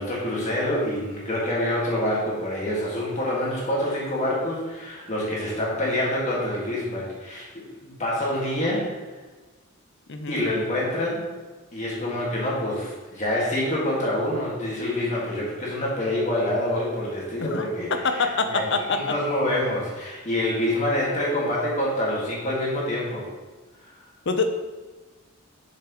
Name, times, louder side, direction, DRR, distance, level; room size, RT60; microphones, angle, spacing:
voice 1, 0.0-9.0 10.3-11.3 11.7-23.3 23.8-23.9, left 1 dB, 35° left, -5 dB, 1.9 m, -26 dB
voice 2, 10.1-10.4 17.5-19.2 24.3-24.6, left 4 dB, 55° left, 7 dB, 0.6 m, -25 dB
7.4 x 6.4 x 3.0 m, 1.3 s
head